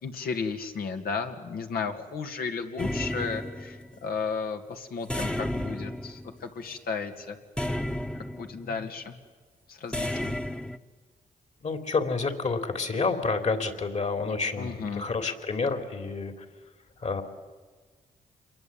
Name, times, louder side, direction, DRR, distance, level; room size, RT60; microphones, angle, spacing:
voice 1, 0.0-7.4 8.3-9.1 9.7-10.4 14.6-15.1, left 5 dB, 75° left, 5 dB, 2.5 m, -34 dB
sound 1, 2.8-4.1 5.1-6.8 7.6-8.7 9.9-10.8, left 1 dB, 5° left, 1.3 m, -32 dB
voice 2, 11.6-16.3 17.0-17.2, left 4 dB, 50° left, 7 dB, 3.4 m, -29 dB
28.0 x 22.5 x 8.9 m, 1.4 s
cardioid pair, 75°, 16 cm